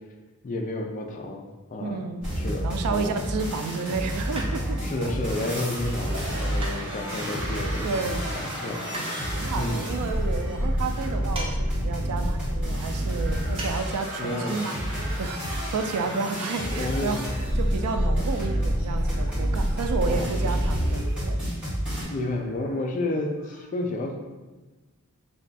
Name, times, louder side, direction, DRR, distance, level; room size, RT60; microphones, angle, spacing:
voice 1, 0.4-2.0 2.4-3.1 4.8-8.9 9.5-9.9 14.2-14.6 16.7-17.2 20.1-20.5 22.1-24.2, left 2 dB, 35° left, 3 dB, 0.3 m, -31 dB
voice 2, 1.8-2.3 2.6-4.8 5.4-5.5 6.3-6.9 7.8-8.3 9.3-21.4, right 4 dB, 90° right, 7 dB, 0.3 m, -31 dB
sound 1, 2.2-22.0, equal, 5° right, 1.3 m, -28 dB
sound 2, 4.3-4.9 6.6-7.3 8.9-9.2 11.3-11.6 11.8-11.9 13.6-13.8 14.1-14.2, right 1 dB, 25° right, 0.5 m, -36 dB
Crow, 4.3-4.8 5.2-11.2 12.8-17.1 17.5-17.9 18.2-18.6 18.9-20.0 20.7-21.0 22.1-23.1 23.4-23.6, right 1 dB, 70° right, 0.9 m, -45 dB
3.4 x 2.2 x 4.0 m, 1.2 s
head